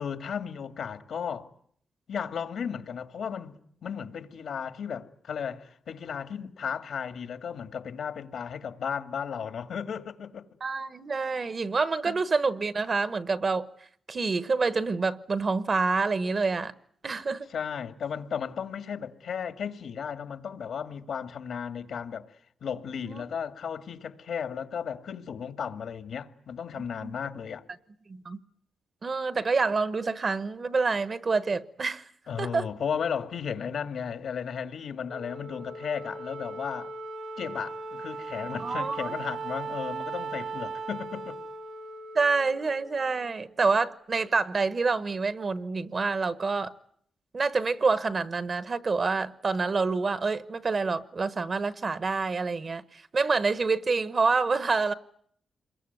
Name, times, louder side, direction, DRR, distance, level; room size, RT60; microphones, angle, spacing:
voice 1, 0.0-1.5 2.1-10.5 12.0-12.2 17.5-22.4 22.6-27.6 32.3-36.9 37.4-41.4 43.6-43.7, left 7 dB, 70° left, 2.0 m, -35 dB
voice 2, 10.6-13.7 14.1-16.7 17.0-17.5 23.0-23.2 27.0-27.1 28.1-28.4 29.0-32.1 32.4-32.7 38.6-39.1 42.1-46.7 47.3-54.9, right 4 dB, 35° right, 1.1 m, -27 dB
Wind instrument woodwind instrument, 35.1-43.6, right 3 dB, 90° right, 1.9 m, -38 dB
27.5 x 22.5 x 9.4 m
wide cardioid pair, 160°, 0 cm